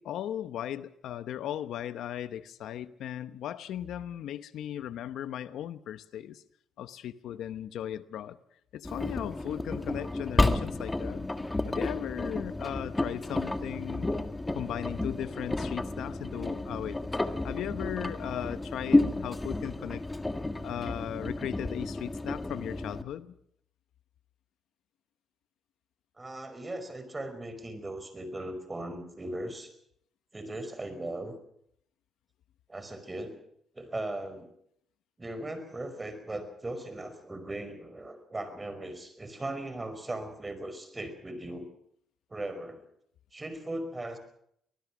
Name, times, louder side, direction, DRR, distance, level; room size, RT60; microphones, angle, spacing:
voice 1, 0.0-6.4 6.8-8.4 8.7-11.3 11.7-14.2 14.5-20.0 20.6-23.3, left 11 dB, 80° left, 13 dB, 0.9 m, -37 dB
Engine, 8.8-23.0, left 2 dB, 15° left, 1.6 m, -31 dB
voice 2, 26.2-29.7 30.3-31.4 32.7-33.4 33.7-34.5 35.2-41.7 42.3-42.8 43.3-44.2, right 1 dB, 20° right, 10 dB, 5.1 m, -38 dB
23.5 x 19.5 x 6.2 m, 0.70 s
cardioid pair, 90°, 0 cm